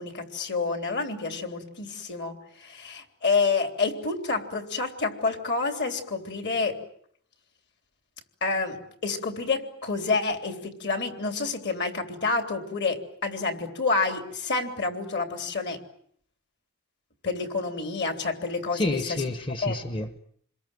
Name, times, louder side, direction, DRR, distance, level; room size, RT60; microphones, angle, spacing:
voice 1, 0.0-6.8 8.4-15.8 17.2-19.2 19.6-19.8, left 4 dB, 55° left, 6 dB, 3.5 m, -28 dB
voice 2, 18.7-20.2, left 2 dB, 25° left, 9 dB, 1.1 m, -29 dB
27.5 x 22.0 x 9.2 m, 0.65 s
head